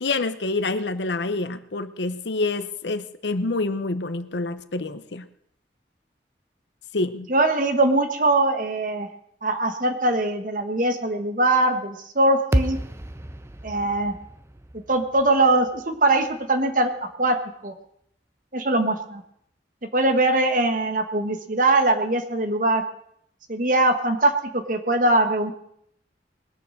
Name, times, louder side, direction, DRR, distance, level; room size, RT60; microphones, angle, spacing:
voice 1, 0.0-5.3 6.9-7.3, left 3 dB, 75° left, 12 dB, 0.8 m, -27 dB
voice 2, 7.3-9.1 9.4-12.8 13.6-14.2 14.9-17.4 17.6-17.7 18.5-19.2 19.9-22.8 23.5-25.5, right 2 dB, 45° right, 6 dB, 1.5 m, -21 dB
sound 1, 12.5-16.8, right 1 dB, 15° right, 0.5 m, -30 dB
21.0 x 7.1 x 6.5 m, 0.69 s
head